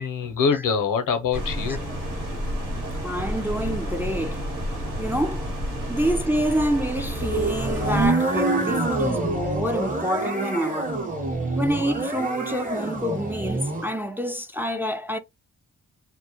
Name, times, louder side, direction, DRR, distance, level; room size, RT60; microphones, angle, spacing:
voice 1, 0.0-1.9 2.6-2.7 5.8-5.9, left 6 dB, 80° left, 0.7 m, -25 dB
sound 1, 1.3-8.1, equal, 80° right, 1.1 m, -30 dB
voice 2, 3.0-4.4 5.0-5.5 5.9-11.0 11.5-15.2, equal, 5° right, 0.3 m, -27 dB
sound 2, 7.1-13.9, right 2 dB, 25° right, 0.8 m, -26 dB
2.2 x 2.1 x 2.8 m
cardioid pair, 55°, 32 cm